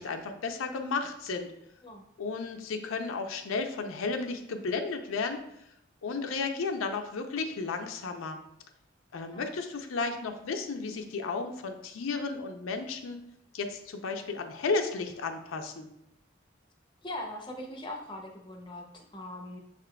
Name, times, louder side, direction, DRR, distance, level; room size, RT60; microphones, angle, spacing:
voice 1, 0.0-1.5 2.2-5.4 6.0-8.4 9.1-13.2 13.5-15.9, left 4 dB, 85° left, 5 dB, 0.5 m, -33 dB
voice 2, 17.0-19.6, left 1 dB, 25° left, 1 dB, 0.5 m, -41 dB
6.4 x 3.6 x 2.2 m, 0.79 s
head